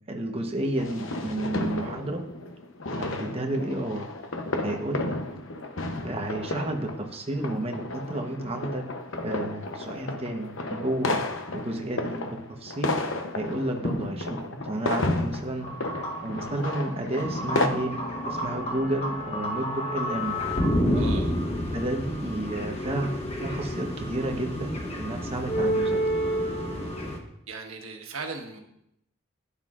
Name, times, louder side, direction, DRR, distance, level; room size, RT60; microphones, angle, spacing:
voice 1, 0.1-2.2 3.0-4.1 4.6-5.2 6.0-8.8 9.2-11.2 11.5-13.0 13.3-15.7 16.2-17.9 18.2-20.4 20.8-21.1 21.7-23.1 23.4-26.0, right 1 dB, 30° right, 3 dB, 1.1 m, -31 dB
sound 1, 0.8-17.7, left 2 dB, 65° left, 0.8 m, -32 dB
sound 2, 15.6-27.2, equal, 30° left, 1.2 m, -30 dB
voice 2, 20.9-21.3 27.5-28.6, right 4 dB, 80° right, 2 dB, 1.4 m, -37 dB
11.5 x 9.9 x 2.5 m, 0.78 s
head